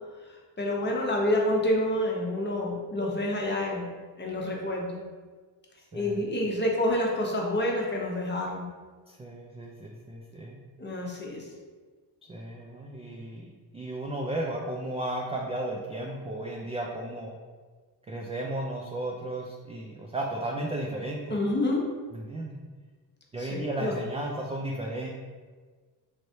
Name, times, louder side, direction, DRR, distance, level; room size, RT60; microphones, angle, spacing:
voice 1, 0.6-3.9 4.2-5.0 5.9-8.7 10.8-11.4 21.3-21.9 23.4-23.9, left 1 dB, 25° left, -1 dB, 0.8 m, -28 dB
voice 2, 9.1-10.6 12.3-17.4 18.1-21.4 22.1-22.6 23.3-25.1, right 1 dB, 15° right, -1 dB, 0.3 m, -34 dB
3.2 x 3.1 x 2.7 m, 1.4 s
supercardioid pair, 70°, 44 cm